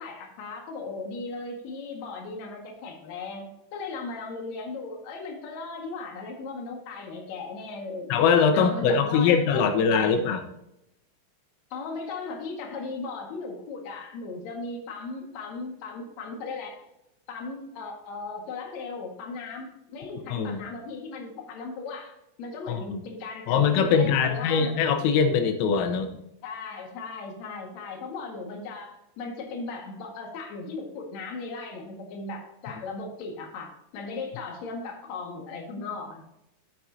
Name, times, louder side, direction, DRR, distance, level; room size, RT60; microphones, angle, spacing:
voice 1, 0.0-10.3 11.7-16.8 17.3-24.7 26.4-36.2, left 3 dB, 55° left, 0 dB, 2.1 m, -37 dB
voice 2, 8.1-10.4 20.3-20.6 22.7-23.0 23.5-26.1, left 6 dB, 90° left, 7 dB, 3.6 m, -22 dB
11.0 x 7.5 x 2.8 m, 0.83 s
omnidirectional pair, 5.7 m